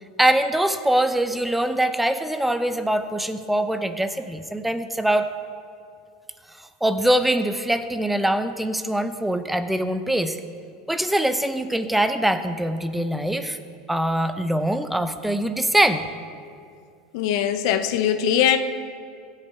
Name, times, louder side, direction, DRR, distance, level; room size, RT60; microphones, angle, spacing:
voice 1, 0.2-5.3 6.8-10.4 10.9-13.6 13.9-16.1, right 1 dB, 5° right, 10 dB, 0.7 m, -23 dB
voice 2, 17.1-18.6, left 9 dB, 70° left, 9 dB, 0.8 m, -21 dB
16.5 x 8.3 x 4.5 m, 2.3 s
supercardioid pair, 115°, 3 cm